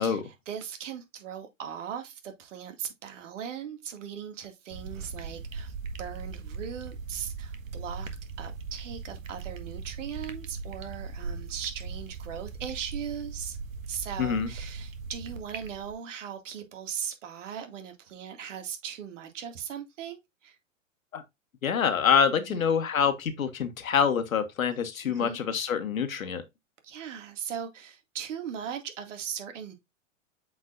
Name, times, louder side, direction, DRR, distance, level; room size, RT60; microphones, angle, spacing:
voice 1, 0.0-8.1 8.4-13.6 13.9-20.6 22.4-22.7 25.1-25.4 26.8-29.7, right 8 dB, 65° right, 2.1 m, -39 dB
sound 1, 4.7-15.9, right 4 dB, 80° right, 1.5 m, -39 dB
voice 2, 14.2-14.5 21.1-21.2 21.6-26.4, left 7 dB, 80° left, 1.4 m, -26 dB
8.1 x 4.8 x 2.5 m
hypercardioid pair, 115°, 40 cm